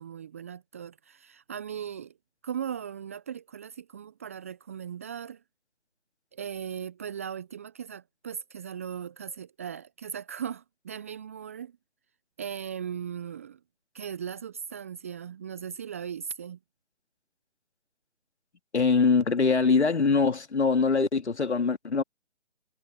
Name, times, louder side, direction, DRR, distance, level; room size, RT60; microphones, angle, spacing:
voice 1, 0.0-2.1 2.4-5.4 6.3-11.8 12.4-13.6 13.9-16.6, right 8 dB, 15° right, 0.6 m, -38 dB
voice 2, 18.7-22.0, left 4 dB, 70° left, 2.8 m, -23 dB
figure-of-eight pair, 145°, 35 cm